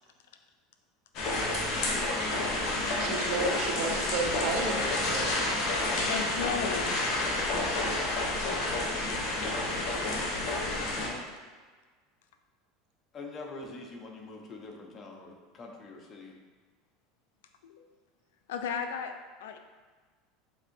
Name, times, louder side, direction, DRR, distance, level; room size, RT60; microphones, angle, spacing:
sound 1, 1.1-11.1, left 2 dB, 55° left, 1.0 m, -30 dB
voice 1, 3.0-5.3, right 3 dB, 65° right, 2 dB, 0.7 m, -32 dB
voice 2, 6.1-6.9 17.6-17.9 18.5-19.1 19.4-19.6, left 7 dB, 80° left, 6 dB, 0.3 m, -34 dB
voice 3, 13.1-16.4, left 2 dB, 35° left, 1 dB, 0.8 m, -44 dB
7.1 x 2.7 x 2.7 m, 1.4 s
hypercardioid pair, 95°, 0 cm